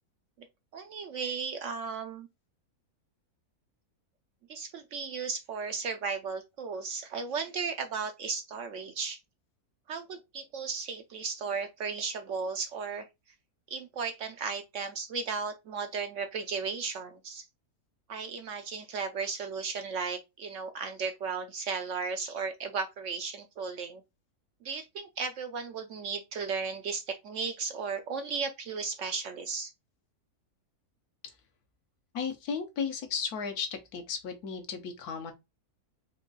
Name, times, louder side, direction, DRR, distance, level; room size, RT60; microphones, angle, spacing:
voice 1, 0.7-2.3 4.5-9.2 9.9-13.1 13.7-17.4 18.1-24.0 24.6-29.7, right 5 dB, 65° right, 0.8 m, -35 dB
voice 2, 32.1-35.3, left 6 dB, 75° left, 1.4 m, -35 dB
4.4 x 2.4 x 3.9 m
omnidirectional pair, 1.6 m